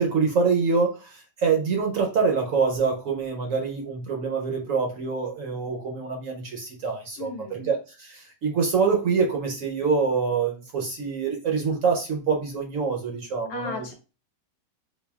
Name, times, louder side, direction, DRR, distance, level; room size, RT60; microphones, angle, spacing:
voice 1, 0.0-13.9, right 5 dB, 65° right, 2 dB, 0.9 m, -25 dB
voice 2, 7.2-7.7 13.5-13.9, left 4 dB, 70° left, 4 dB, 1.0 m, -35 dB
5.4 x 2.3 x 2.3 m, 0.33 s
omnidirectional pair, 1.8 m